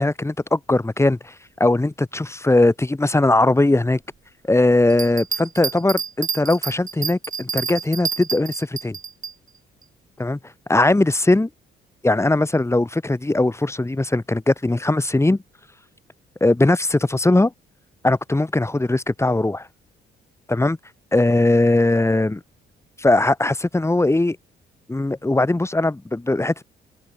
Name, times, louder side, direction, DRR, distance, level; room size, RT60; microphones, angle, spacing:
voice 1, 0.0-1.3 1.6-4.0 4.5-9.0 10.2-10.4 10.7-11.5 12.0-15.4 16.4-17.5 18.0-19.7 20.5-20.8 21.1-22.4 23.0-24.4 24.9-26.6, left 2 dB, 15° left, 3.3 m, -19 dB
Bell, 4.9-9.3 9.8-9.9, right 6 dB, 40° right, 1.9 m, -28 dB
open air
cardioid pair, 90°, 20 cm